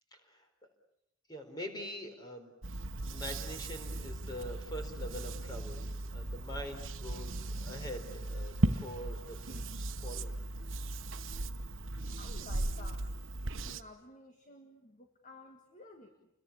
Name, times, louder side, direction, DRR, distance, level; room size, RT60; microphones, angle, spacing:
voice 1, 0.1-0.5 1.3-2.5 3.1-10.3, equal, 20° left, 5 dB, 4.3 m, -44 dB
sound 1, 2.6-13.8, right 2 dB, 60° right, 1.1 m, -37 dB
voice 2, 12.2-13.1 13.6-16.3, left 2 dB, 35° left, 5 dB, 1.8 m, -53 dB
29.5 x 22.0 x 8.5 m, 0.81 s
head